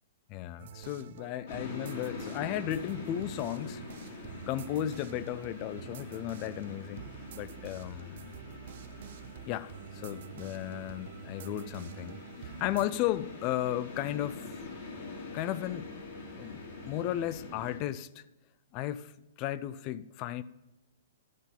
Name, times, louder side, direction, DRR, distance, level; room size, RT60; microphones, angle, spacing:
voice 1, 0.3-3.8 4.4-8.2 9.5-14.6 15.3-15.9 16.4-18.2 18.7-19.1 19.4-20.4, left 13 dB, 35° left, 0.4 m, -35 dB
sound 1, 0.6-12.9, right 11 dB, 55° right, 0.4 m, -48 dB
sound 2, 1.5-17.8, left 3 dB, 55° left, 2.5 m, -44 dB
12.0 x 4.3 x 5.4 m
hypercardioid pair, 125°, 0 cm